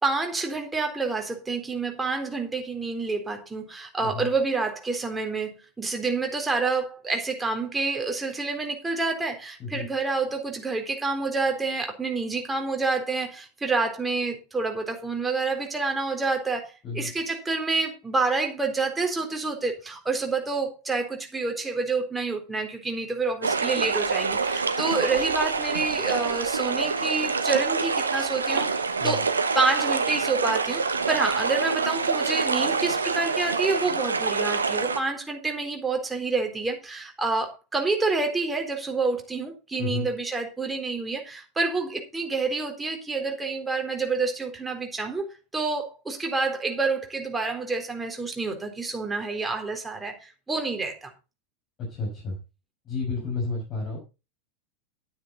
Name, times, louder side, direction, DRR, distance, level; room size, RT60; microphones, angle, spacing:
voice 1, 0.0-45.2 45.5-51.1, right 3 dB, 10° right, 3 dB, 3.9 m, -28 dB
sound 1, 23.4-35.0, right 4 dB, 80° right, 1.1 m, -26 dB
voice 2, 51.8-52.4 52.9-54.0, left 3 dB, 35° left, -1 dB, 6.0 m, -31 dB
12.0 x 9.3 x 4.1 m, 0.29 s
figure-of-eight pair, 90°, 0 cm